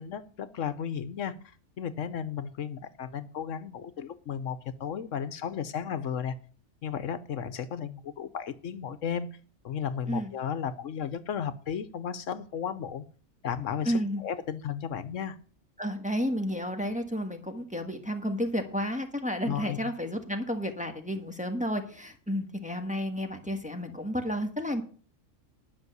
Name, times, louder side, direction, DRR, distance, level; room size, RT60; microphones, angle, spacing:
voice 1, 0.0-1.3 1.8-6.4 6.8-9.3 9.6-13.0 13.4-15.4 19.5-19.8, left 8 dB, 70° left, 14 dB, 1.3 m, -34 dB
voice 2, 13.8-14.2 15.8-24.8, equal, 5° right, 4 dB, 1.5 m, -31 dB
11.0 x 6.3 x 8.0 m, 0.41 s
omnidirectional pair, 1.4 m